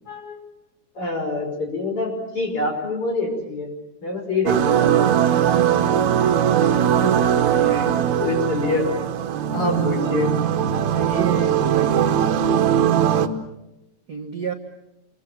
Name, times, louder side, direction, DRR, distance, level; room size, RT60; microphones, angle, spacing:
voice 1, 0.1-0.4 0.9-3.7 4.0-5.2 6.6-7.1 7.7-9.0 9.5-10.3, left 2 dB, 45° left, 2 dB, 6.4 m, -26 dB
sound 1, 4.5-13.3, right 9 dB, 70° right, 2.5 m, -20 dB
voice 2, 10.7-12.7 14.1-14.5, right 6 dB, 45° right, 4 dB, 1.3 m, -31 dB
27.5 x 23.5 x 7.5 m, 0.91 s
omnidirectional pair, 3.5 m